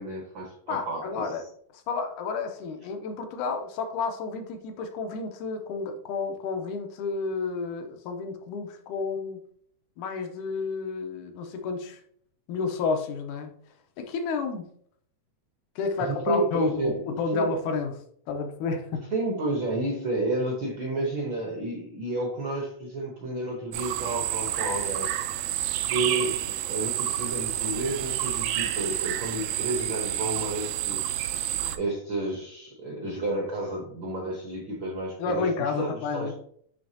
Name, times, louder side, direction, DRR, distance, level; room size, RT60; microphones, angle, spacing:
voice 1, 0.0-1.4 16.0-17.0 17.3-17.5 19.1-25.1 25.9-31.3 31.8-36.3, right 2 dB, 65° right, -1 dB, 1.2 m, -31 dB
voice 2, 0.7-1.4 1.7-9.4 10.0-12.0 12.5-13.6 14.0-14.7 15.8-18.0 18.3-19.1 35.2-36.5, left 4 dB, 85° left, 5 dB, 2.2 m, -31 dB
sound 1, 23.7-31.8, right 12 dB, 80° right, 1.9 m, -29 dB
9.9 x 3.5 x 2.7 m, 0.63 s
omnidirectional pair, 3.5 m